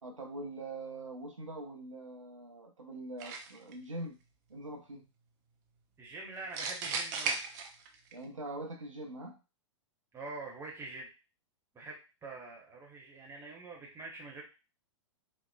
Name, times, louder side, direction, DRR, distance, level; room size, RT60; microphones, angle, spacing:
voice 1, 0.0-4.2 4.5-5.1 8.1-9.4, right 2 dB, 80° right, 2 dB, 0.6 m, -43 dB
sound 1, 3.2-3.7 6.5-8.1, right 5 dB, 35° right, 0.4 m, -35 dB
voice 2, 6.0-7.4 10.1-11.1 11.7-14.4, right 3 dB, 15° right, -2 dB, 0.9 m, -45 dB
3.0 x 2.0 x 2.2 m, 0.29 s
figure-of-eight pair, 105°, 16 cm